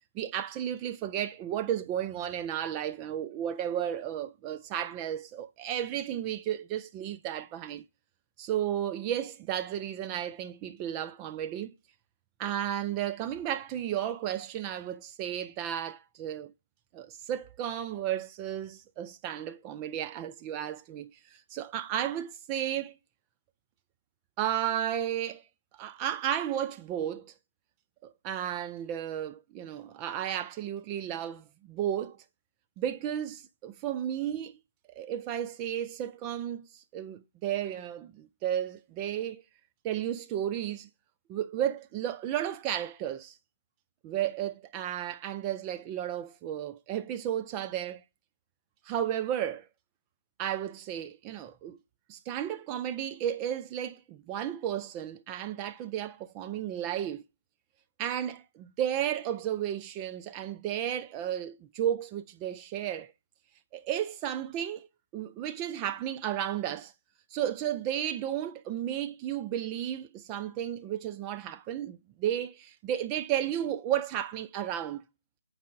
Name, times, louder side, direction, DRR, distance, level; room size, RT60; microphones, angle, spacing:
voice 1, 0.1-7.8 8.4-11.7 12.4-16.5 16.9-23.0 24.4-25.4 25.7-27.3 28.0-32.2 32.8-34.5 35.0-39.4 39.8-40.9 41.3-43.3 44.0-48.0 48.9-49.7 50.4-51.8 52.1-57.2 58.0-63.1 63.7-64.9 65.1-66.9 67.3-75.0, right 10 dB, 20° right, 0.3 m, -33 dB
8.4 x 4.7 x 3.6 m
figure-of-eight pair, 145°, 0 cm